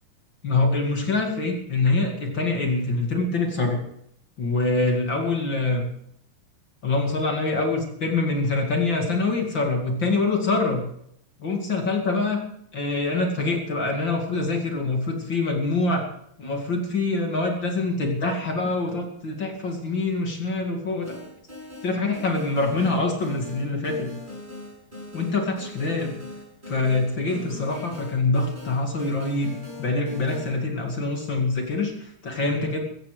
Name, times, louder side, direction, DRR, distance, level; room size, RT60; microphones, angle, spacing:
voice 1, 0.4-3.8 4.4-5.9 6.8-10.8 11.4-12.4 12.7-16.0 16.4-21.2 21.8-24.1 25.1-26.1 26.7-32.8, left 3 dB, 35° left, 2 dB, 2.4 m, -25 dB
sound 1, 21.0-30.6, left 2 dB, 10° right, 6.6 m, -40 dB
16.0 x 14.5 x 5.0 m, 0.73 s
omnidirectional pair, 4.6 m